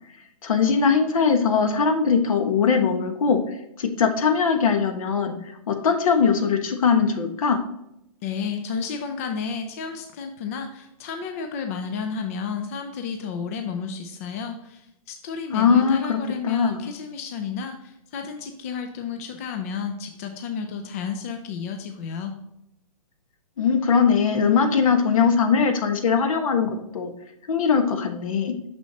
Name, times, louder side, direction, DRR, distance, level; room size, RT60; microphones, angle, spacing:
voice 1, 0.4-3.4 3.8-5.3 5.7-7.6 15.5-16.2 16.4-16.9 23.6-27.1 27.5-28.5, left 6 dB, 70° left, 6 dB, 1.2 m, -21 dB
voice 2, 8.2-22.4, left 6 dB, 25° left, 5 dB, 0.4 m, -32 dB
6.4 x 6.1 x 2.8 m, 0.82 s
hypercardioid pair, 170°, 18 cm